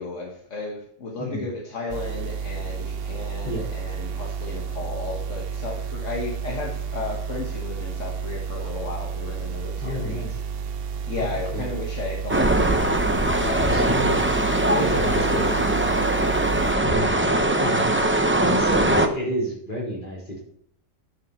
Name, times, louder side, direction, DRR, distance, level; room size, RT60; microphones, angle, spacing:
voice 1, 0.0-10.2 11.1-13.9 14.7-15.6 17.3-17.6, left 3 dB, 70° left, 0 dB, 1.6 m, -34 dB
voice 2, 1.2-1.5 3.4-3.7 9.8-10.4 11.1-11.2 11.5-11.6 13.7-16.0 16.8-17.2 17.5-17.9 18.4-20.4, equal, 40° left, -5 dB, 3.9 m, -30 dB
sound 1, 1.9-16.7, right 6 dB, 60° right, 0.7 m, -31 dB
sound 2, 12.3-19.1, right 1 dB, 15° right, 0.5 m, -21 dB
11.0 x 6.8 x 4.3 m, 0.69 s
omnidirectional pair, 1.3 m